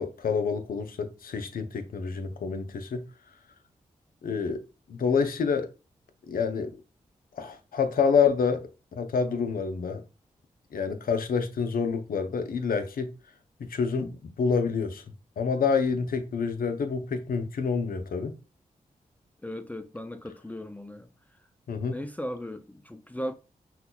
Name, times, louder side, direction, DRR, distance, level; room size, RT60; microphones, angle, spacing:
voice 1, 0.0-3.0 4.2-4.6 4.9-5.7 6.3-6.7 7.4-8.6 8.9-10.0 10.7-13.1 13.6-15.0 15.4-18.4 21.7-22.0, left 5 dB, 70° left, 0.6 m, -27 dB
voice 2, 19.4-21.1 21.9-23.3, equal, 10° left, 0.4 m, -37 dB
5.7 x 2.3 x 2.2 m
supercardioid pair, 40°, 15 cm